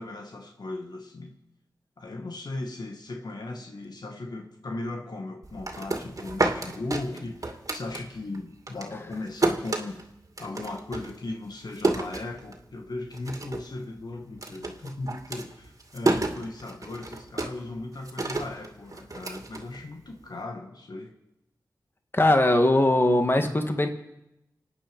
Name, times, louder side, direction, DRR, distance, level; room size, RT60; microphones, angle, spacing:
voice 1, 0.0-1.4 2.0-10.0 10.4-21.1, left 2 dB, 65° left, 3 dB, 1.8 m, -37 dB
sound 1, 5.4-8.4 8.7-12.8 13.1-13.7 14.0-20.2, right 2 dB, 50° right, 2.4 m, -30 dB
voice 2, 22.1-23.9, left 1 dB, 30° left, 5 dB, 2.0 m, -20 dB
26.5 x 9.0 x 5.4 m, 0.87 s
cardioid pair, 40°, 8 cm